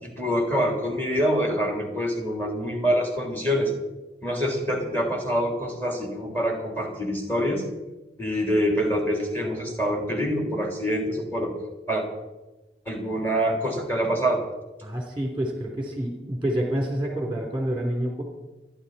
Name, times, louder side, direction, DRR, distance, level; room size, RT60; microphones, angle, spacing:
voice 1, 0.0-3.7 4.2-7.6 8.2-11.5 11.9-12.0 12.9-14.4, equal, 10° left, 1 dB, 3.4 m, -25 dB
voice 2, 14.8-18.2, right 1 dB, 10° right, 1 dB, 3.1 m, -28 dB
29.0 x 10.5 x 4.2 m, 1.1 s
head